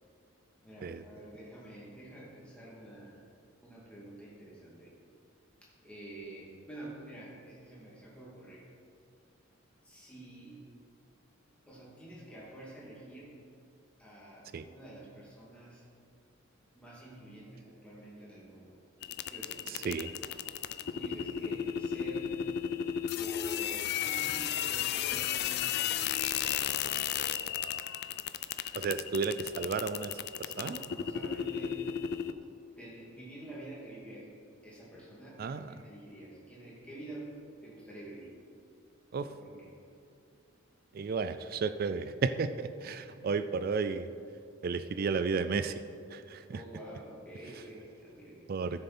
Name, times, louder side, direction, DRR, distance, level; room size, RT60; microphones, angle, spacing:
voice 1, 0.6-3.2 3.6-4.9 5.6-8.7 9.8-10.6 11.7-13.4 14.0-15.8 16.7-18.7 19.2-19.7 20.7-22.4 23.2-26.2 30.5-31.9 32.8-34.3 34.6-37.3 37.6-38.4 39.2-39.7 42.9-43.3 46.5-48.5, right 1 dB, 5° left, -7 dB, 2.4 m, -48 dB
sound 1, 19.0-32.3, left 9 dB, 50° left, 0.3 m, -34 dB
voice 2, 19.7-20.1 28.8-30.8 35.4-35.7 39.1-39.3 40.9-44.1 44.6-45.8 46.1-46.6 48.5-48.8, right 5 dB, 45° right, 11 dB, 0.3 m, -33 dB
13.5 x 6.7 x 4.3 m, 2.4 s
head